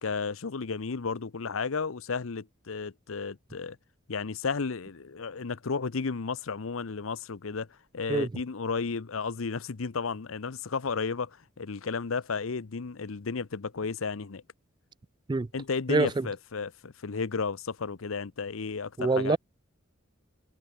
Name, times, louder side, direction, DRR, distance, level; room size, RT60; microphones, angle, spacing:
voice 1, 0.0-3.8 4.1-7.7 7.9-11.3 11.6-14.4 15.5-19.4, left 5 dB, 90° left, 0.8 m, -33 dB
voice 2, 15.9-16.3 19.0-19.4, right 3 dB, 20° right, 0.3 m, -25 dB
head